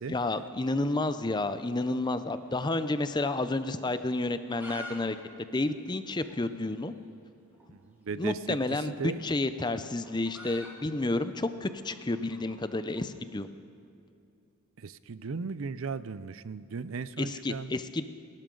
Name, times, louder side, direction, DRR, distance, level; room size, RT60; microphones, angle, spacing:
voice 1, 0.1-5.2 5.5-6.9 8.2-13.5 17.2-18.1, left 2 dB, 20° left, 11 dB, 0.5 m, -30 dB
sound 1, 2.0-3.3 3.6-3.7 4.2-5.0 5.2-5.3 5.5-5.6 6.2-6.3 7.5-7.7 8.8-13.1, equal, 10° right, 2.6 m, -47 dB
voice 2, 7.7-9.2 14.8-17.8, right 5 dB, 70° right, 16 dB, 0.5 m, -37 dB
29.0 x 12.0 x 3.9 m, 2.5 s
head